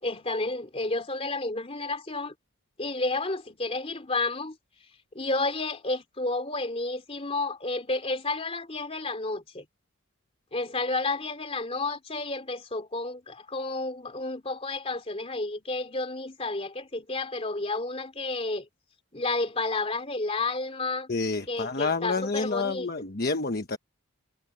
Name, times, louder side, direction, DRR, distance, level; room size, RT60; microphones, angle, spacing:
voice 1, 0.0-2.3 2.8-4.6 5.1-9.6 10.5-18.7 19.1-21.1 21.5-22.9, left 2 dB, 30° left, 3.0 m, -31 dB
voice 2, 21.1-23.8, left 3 dB, 50° left, 1.2 m, -29 dB
head